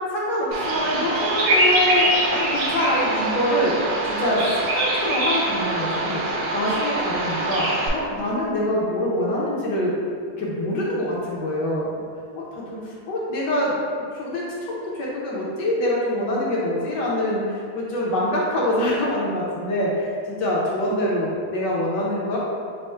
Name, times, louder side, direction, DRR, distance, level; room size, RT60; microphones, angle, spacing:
voice 1, 0.1-4.4 4.7-9.9 10.4-12.0 12.4-13.7 14.1-14.4 14.7-22.4, left 1 dB, 70° left, -5 dB, 1.2 m, -25 dB
Bird vocalization bird call bird song, 0.5-7.9, right 2 dB, 85° right, 1.6 m, -24 dB
4.3 x 2.0 x 4.3 m, 2.2 s
omnidirectional pair, 2.2 m